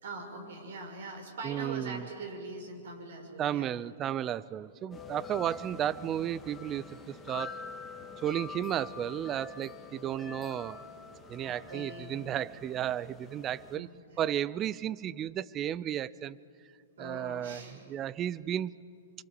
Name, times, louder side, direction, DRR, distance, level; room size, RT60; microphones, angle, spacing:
voice 1, 0.0-3.7 5.3-5.6 11.4-12.3 13.7-14.6 17.0-17.8, right 3 dB, 70° right, 2 dB, 5.7 m, -43 dB
voice 2, 1.4-2.1 3.4-7.0 7.3-7.6 8.2-10.8 11.3-13.9 14.2-16.4 17.0-17.6 17.9-18.7, right 11 dB, 25° right, 20 dB, 0.5 m, -33 dB
sound 1, 4.9-13.8, left 6 dB, 15° left, 1.8 m, -46 dB
26.0 x 24.0 x 6.9 m, 2.4 s
hypercardioid pair, 130°, 0 cm